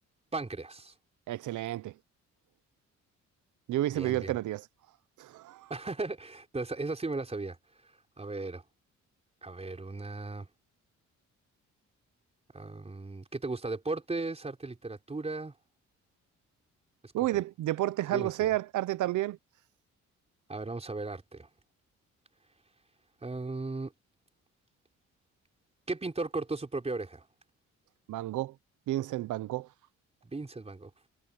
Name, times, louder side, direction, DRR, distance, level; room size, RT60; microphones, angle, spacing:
voice 1, 0.3-0.9 3.9-4.4 5.7-7.6 8.2-8.6 9.4-10.5 12.5-15.5 17.0-17.3 18.1-18.5 20.5-21.5 23.2-23.9 25.9-27.3 30.2-30.9, right 3 dB, 20° right, 4.5 m, -36 dB
voice 2, 1.3-1.9 3.7-4.6 5.2-5.7 17.1-19.4 28.1-28.5 28.9-29.7, right 15 dB, 80° right, 0.9 m, -31 dB
cardioid pair, 90°, 30 cm